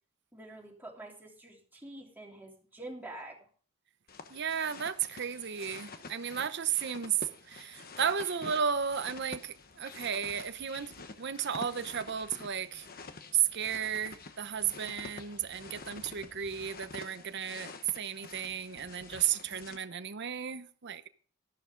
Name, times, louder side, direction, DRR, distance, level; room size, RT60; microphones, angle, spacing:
voice 1, 0.3-3.4, right 1 dB, 10° right, 3.2 m, -46 dB
sound 1, 4.1-19.8, left 4 dB, 45° left, 1.1 m, -48 dB
voice 2, 4.3-10.9 11.2-12.9 13.3-21.1, right 8 dB, 55° right, 0.8 m, -34 dB
13.5 x 11.5 x 3.8 m
head